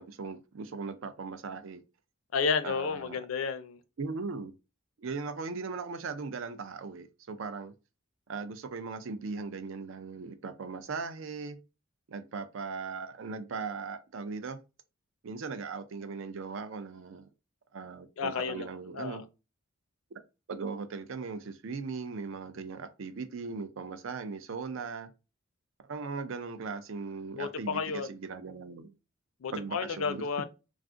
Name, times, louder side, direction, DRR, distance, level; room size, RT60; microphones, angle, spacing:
voice 1, 0.0-1.8 2.6-3.2 4.0-4.5 5.0-7.7 8.3-11.6 12.1-14.6 15.2-17.3 17.7-19.2 20.5-25.1 25.8-28.9 29.5-30.2, right 4 dB, 70° right, 0.4 m, -38 dB
voice 2, 2.3-3.8 18.2-19.2 27.3-28.1 29.4-30.4, left 5 dB, 80° left, 0.4 m, -32 dB
2.4 x 2.4 x 3.6 m
head